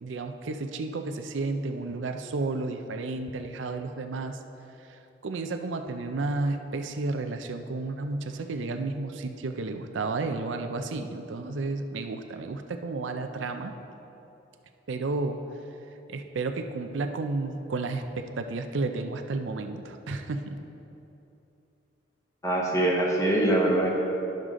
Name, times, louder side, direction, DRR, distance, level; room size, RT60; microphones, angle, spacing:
voice 1, 0.0-4.4 5.2-13.7 14.9-15.4 16.1-20.6, right 3 dB, 80° right, 6 dB, 0.5 m, -32 dB
voice 2, 22.4-23.9, right 1 dB, 15° left, -2 dB, 1.0 m, -23 dB
10.5 x 6.6 x 3.7 m, 2.9 s
head